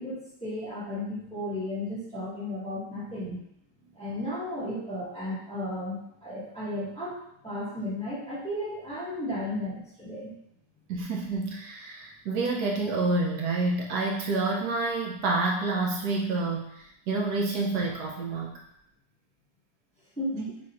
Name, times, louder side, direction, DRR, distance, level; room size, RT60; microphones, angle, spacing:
voice 1, 0.0-3.4 3.8-7.2 7.4-10.3 20.2-20.6, left 1 dB, 5° left, -9 dB, 1.4 m, -34 dB
voice 2, 10.9-18.5, right 3 dB, 75° right, -1 dB, 1.2 m, -28 dB
4.3 x 4.1 x 2.4 m, 0.75 s
omnidirectional pair, 1.8 m